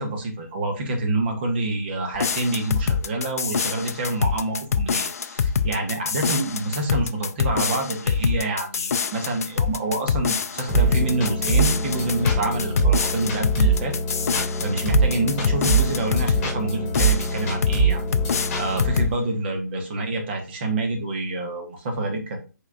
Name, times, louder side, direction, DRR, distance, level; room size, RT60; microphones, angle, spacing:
voice 1, 0.0-13.9 14.2-18.0 18.6-22.4, right 2 dB, 35° right, 4 dB, 1.1 m, -27 dB
sound 1, 2.1-16.5 16.9-17.8 18.1-19.2, left 6 dB, 55° left, 0.4 m, -25 dB
sound 2, 10.7-19.0, right 3 dB, 25° left, 1.9 m, -24 dB
4.7 x 4.1 x 2.4 m, 0.32 s
figure-of-eight pair, 135°, 10 cm